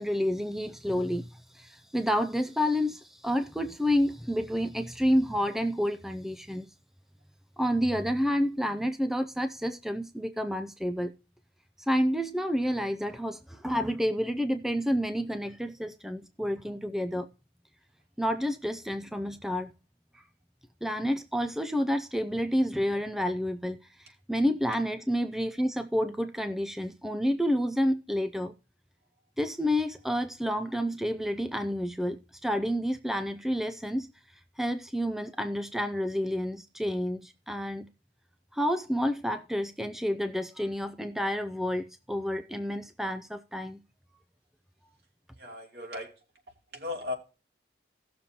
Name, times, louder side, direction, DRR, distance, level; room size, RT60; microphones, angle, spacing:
voice 1, 0.0-6.7 7.6-11.1 11.8-17.3 18.2-19.7 20.1-20.2 20.8-28.5 29.4-34.1 34.6-37.9 38.5-43.8, equal, ahead, 0.4 m, -29 dB
voice 2, 45.4-46.1 46.7-47.1, left 2 dB, 60° right, 2.9 m, -36 dB
17.0 x 6.8 x 2.8 m
head